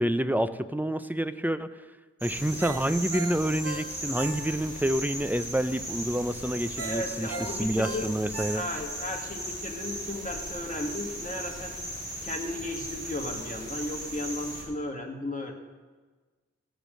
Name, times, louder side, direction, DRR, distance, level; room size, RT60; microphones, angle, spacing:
voice 1, 0.0-1.7 2.2-7.3 7.6-8.6, right 1 dB, 5° right, 11 dB, 0.5 m, -28 dB
sound 1, 2.2-14.6, right 1 dB, 30° right, 4.7 m, -37 dB
Ringtone, 2.6-4.8 5.2-5.3 6.8-9.0 9.4-9.5, right 3 dB, 55° right, 1.2 m, -39 dB
voice 2, 6.8-8.1 8.5-11.7 12.2-15.5, left 1 dB, 25° left, 2 dB, 1.6 m, -35 dB
14.5 x 5.2 x 7.5 m, 1.3 s
wide cardioid pair, 70°, 30 cm